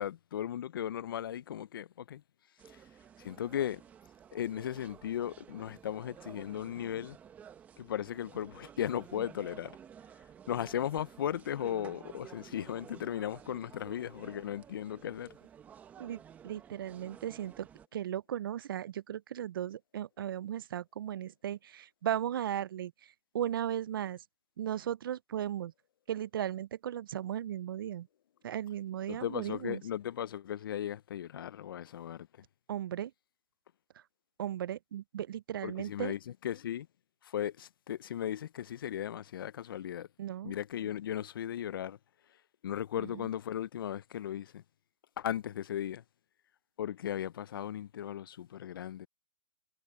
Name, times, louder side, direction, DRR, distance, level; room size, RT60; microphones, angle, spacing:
voice 1, 0.0-2.2 2.7-2.8 3.2-3.8 4.3-7.2 7.8-9.8 10.5-15.3 29.1-32.3 35.6-36.9 37.2-40.1 40.4-42.0 42.6-44.6 45.2-46.0 46.8-49.1, left 10 dB, 65° left, 0.5 m, -36 dB
sound 1, 2.6-17.9, right 8 dB, 10° right, 1.0 m, -53 dB
voice 2, 16.0-22.9 23.3-24.2 24.6-25.7 26.1-28.1 28.4-29.8 32.7-33.1 34.4-36.1 40.2-40.5 43.0-43.2, right 10 dB, 65° right, 0.5 m, -36 dB
hypercardioid pair, 160°, 12 cm